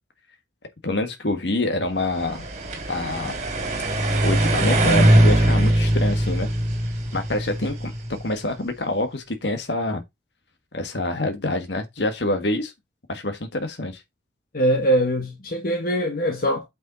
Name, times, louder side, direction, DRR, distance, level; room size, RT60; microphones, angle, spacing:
voice 1, 0.8-2.5 2.9-3.4 4.2-6.5 7.1-10.0 10.7-12.7 13.1-14.0, left 2 dB, 75° left, 1.6 m, -26 dB
sound 1, 2.2-8.3, right 1 dB, 40° right, 2.7 m, -21 dB
voice 2, 14.5-16.6, right 1 dB, 55° left, 1.5 m, -22 dB
8.6 x 5.5 x 4.0 m
head